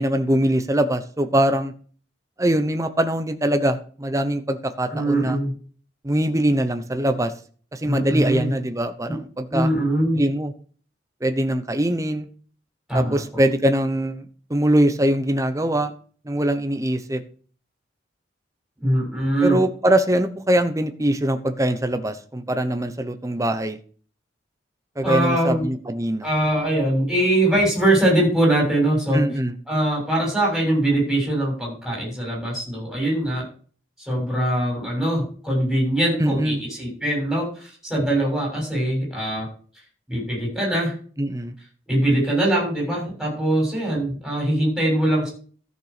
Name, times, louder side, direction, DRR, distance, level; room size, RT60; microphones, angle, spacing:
voice 1, 0.0-1.7 2.4-5.4 6.0-7.3 7.7-9.7 10.1-10.5 11.2-12.3 12.9-15.9 16.3-17.2 19.4-23.8 25.0-26.3 29.1-29.5 36.2-36.6 41.2-41.5, right 1 dB, 15° right, 8 dB, 0.8 m, -22 dB
voice 2, 4.9-5.5 7.8-8.5 9.1-9.2 9.5-10.2 12.9-13.2 18.8-19.6 25.0-25.7 26.2-29.2 29.7-33.5 34.0-39.5 40.1-40.9 41.9-45.3, right 1 dB, ahead, -3 dB, 7.0 m, -22 dB
13.5 x 6.7 x 5.0 m, 0.42 s
head